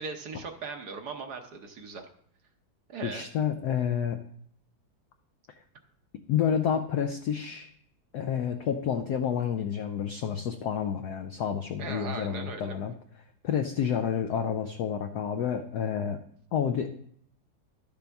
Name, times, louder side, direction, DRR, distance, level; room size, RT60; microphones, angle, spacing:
voice 1, 0.0-2.0 2.9-3.3 11.8-12.8, right 4 dB, 60° right, 5 dB, 1.2 m, -38 dB
voice 2, 3.0-4.2 6.3-7.7 8.1-12.9 13.4-16.2 16.5-16.9, left 8 dB, 70° left, 6 dB, 1.0 m, -29 dB
11.5 x 6.9 x 3.5 m, 0.66 s
omnidirectional pair, 2.2 m